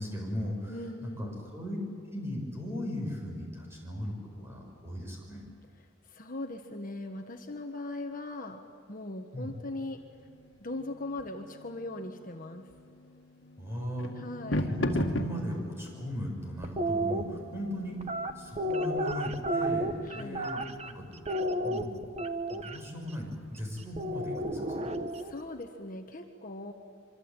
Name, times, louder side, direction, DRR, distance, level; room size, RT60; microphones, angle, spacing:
voice 1, 0.0-0.7 1.0-1.8 2.1-5.4 9.3-9.5 13.6-14.1 14.6-18.0 18.4-21.1 21.5-21.9 22.5-24.9, equal, 15° right, 0 dB, 7.3 m, -37 dB
voice 2, 0.7-1.4 6.1-8.6 8.9-10.0 10.6-12.7 14.1-14.7 20.0-20.4 25.2-26.7, left 2 dB, 45° left, 4 dB, 1.4 m, -39 dB
sound 1, 10.0-20.8, left 1 dB, 70° left, 2.1 m, -39 dB
sound 2, 16.6-17.2 18.0-20.9 21.3-22.8 24.0-25.3, right 1 dB, 35° right, 1.2 m, -31 dB
26.0 x 25.0 x 9.0 m, 2.2 s
head